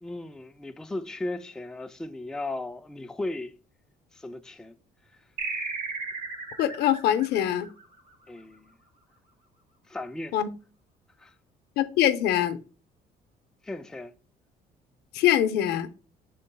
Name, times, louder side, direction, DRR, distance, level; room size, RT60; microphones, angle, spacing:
voice 1, 0.0-3.6 4.1-4.7 5.1-5.2 8.3-8.7 9.9-10.4 11.2-11.3 13.6-14.1, left 2 dB, 5° left, 0.3 m, -36 dB
sound 1, 5.4-8.4, right 4 dB, 50° right, 1.3 m, -35 dB
voice 2, 6.6-7.7 10.3-10.5 11.8-12.6 15.1-15.9, left 11 dB, 75° left, 0.5 m, -23 dB
5.1 x 3.8 x 2.2 m
cardioid pair, 110°, 17 cm